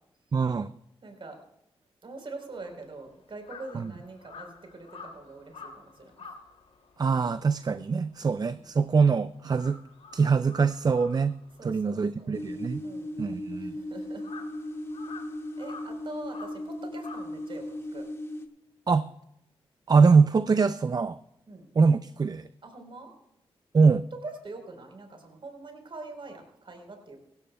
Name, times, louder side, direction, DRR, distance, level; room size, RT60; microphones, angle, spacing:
voice 1, 0.3-0.7 3.7-3.9 7.0-9.8 10.1-11.4 11.6-12.8 13.2-13.7 18.9-19.1 19.9-21.2 21.8-22.5 23.7-24.0, right 5 dB, 40° right, 13 dB, 0.5 m, -23 dB
voice 2, 1.0-1.4 2.0-6.3 8.2-8.7 11.6-12.4 12.8-14.3 15.6-18.1 21.5-21.7 22.6-23.1 24.2-27.2, right 2 dB, 55° right, 4 dB, 4.1 m, -44 dB
Crow, 2.5-9.1 9.4-18.0, left 4 dB, 80° left, 2.6 m, -49 dB
sound 1, 12.3-18.5, left 1 dB, 25° left, 1.8 m, -37 dB
17.5 x 15.5 x 2.3 m, 0.82 s
cardioid pair, 65°, 11 cm